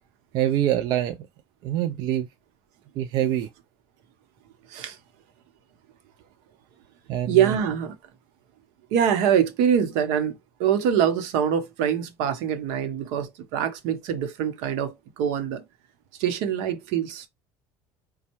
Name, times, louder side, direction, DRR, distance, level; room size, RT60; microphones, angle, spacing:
voice 1, 0.3-1.2 1.6-2.3 3.0-3.5 7.1-7.6, right 12 dB, 60° right, 0.4 m, -25 dB
voice 2, 7.3-8.0 8.9-15.6 16.2-17.3, right 9 dB, 85° right, 0.9 m, -24 dB
5.3 x 2.2 x 3.0 m
cardioid pair, 125°, 8 cm